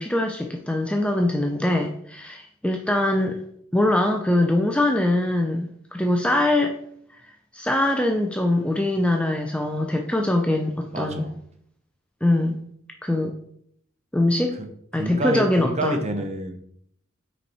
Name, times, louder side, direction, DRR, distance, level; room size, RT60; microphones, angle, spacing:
voice 1, 0.0-3.4 3.7-6.8 7.5-11.3 12.2-12.6 13.0-13.3 14.1-14.6 14.9-16.0, left 1 dB, 5° left, 3 dB, 0.4 m, -22 dB
voice 2, 10.9-11.3 14.5-16.6, right 2 dB, 30° right, 6 dB, 0.7 m, -29 dB
5.6 x 4.2 x 4.6 m, 0.69 s
head